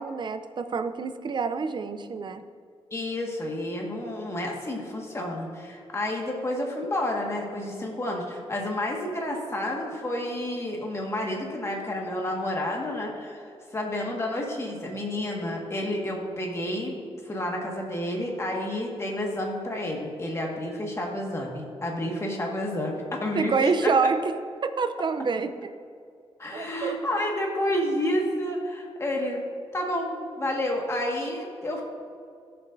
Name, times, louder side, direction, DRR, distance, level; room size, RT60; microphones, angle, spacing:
voice 1, 0.0-2.4 23.4-24.4 24.6-25.7 26.5-27.0, right 5 dB, 45° right, 10 dB, 0.5 m, -27 dB
voice 2, 2.9-24.1 26.4-29.4 29.7-31.8, left 1 dB, 25° left, -1 dB, 1.7 m, -30 dB
15.5 x 7.0 x 2.6 m, 2.2 s
wide cardioid pair, 115°, 11 cm